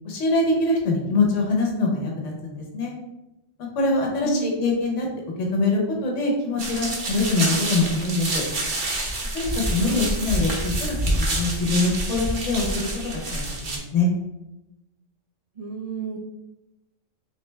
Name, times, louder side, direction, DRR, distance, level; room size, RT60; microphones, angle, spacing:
voice 1, 0.0-2.9 3.7-5.1 5.4-8.4 9.3-12.9 13.3-14.1, left 2 dB, 70° left, -1 dB, 1.2 m, -24 dB
voice 2, 4.2-4.7 9.8-10.2 15.6-16.2, right 2 dB, 70° right, -2 dB, 0.3 m, -31 dB
sound 1, 6.6-13.8, right 1 dB, 45° right, 0.8 m, -27 dB
3.7 x 3.3 x 3.1 m, 0.95 s
omnidirectional pair, 1.3 m